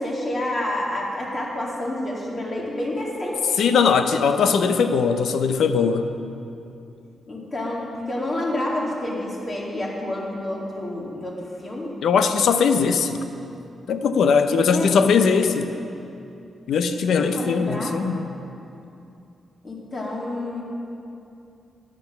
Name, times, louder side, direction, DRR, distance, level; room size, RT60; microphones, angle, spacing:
voice 1, 0.0-3.6 7.3-12.0 14.7-15.5 17.2-18.0 19.6-20.6, left 1 dB, 35° left, -3 dB, 2.4 m, -29 dB
voice 2, 3.6-6.1 12.0-13.2 13.9-15.7 16.7-18.3, left 5 dB, 80° left, 8 dB, 0.7 m, -20 dB
13.0 x 10.0 x 5.9 m, 2.7 s
wide cardioid pair, 150°, 0 cm